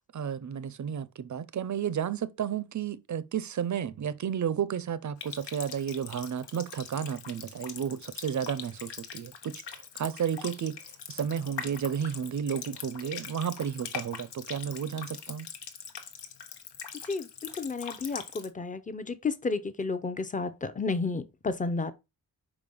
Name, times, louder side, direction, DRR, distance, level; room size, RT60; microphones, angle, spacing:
voice 1, 0.1-10.8 11.1-15.5, right 8 dB, 45° right, 0.5 m, -32 dB
Water tap faucet, 5.2-18.5, left 7 dB, 85° left, 1.1 m, -42 dB
voice 2, 17.6-21.9, left 4 dB, 20° left, 0.6 m, -31 dB
5.1 x 5.0 x 5.4 m
wide cardioid pair, 175°, 40 cm